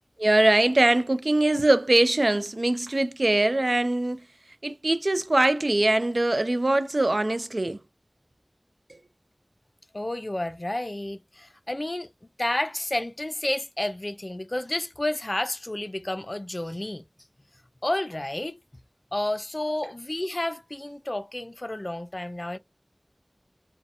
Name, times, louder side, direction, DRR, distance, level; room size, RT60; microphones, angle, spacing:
voice 1, 0.2-4.2 4.6-7.8, right 2 dB, 70° right, 0.4 m, -22 dB
voice 2, 9.9-12.1 12.4-17.0 17.8-18.6 19.1-22.6, left 1 dB, 50° left, 0.4 m, -30 dB
2.7 x 2.1 x 2.5 m
wide cardioid pair, 40°, 0 cm